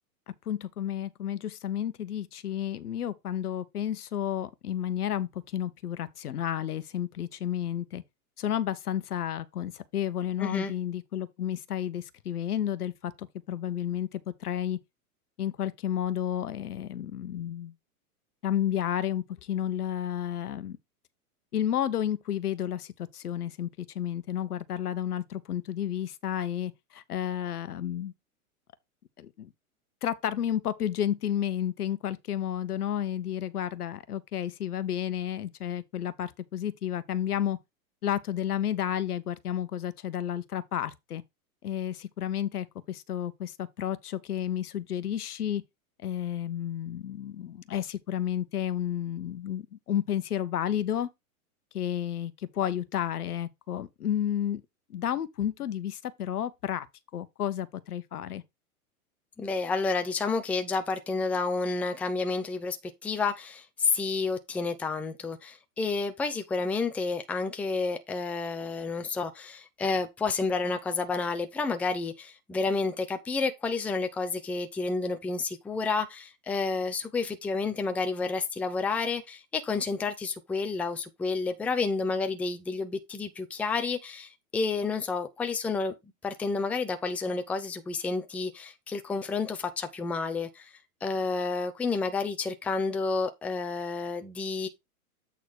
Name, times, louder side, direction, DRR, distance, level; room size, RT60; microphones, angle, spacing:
voice 1, 0.5-8.0 8.4-14.8 15.4-17.7 18.4-20.8 21.5-28.1 29.2-29.5 30.0-37.6 38.0-41.2 41.6-45.6 46.0-51.1 51.7-54.6 54.9-56.9 57.1-58.4, left 10 dB, 85° left, 1.1 m, -31 dB
voice 2, 10.4-10.7 59.4-62.8 63.0-85.9 86.2-90.7 91.0-94.7, left 4 dB, 5° left, 0.5 m, -30 dB
8.3 x 3.9 x 4.6 m
hypercardioid pair, 130°, 44 cm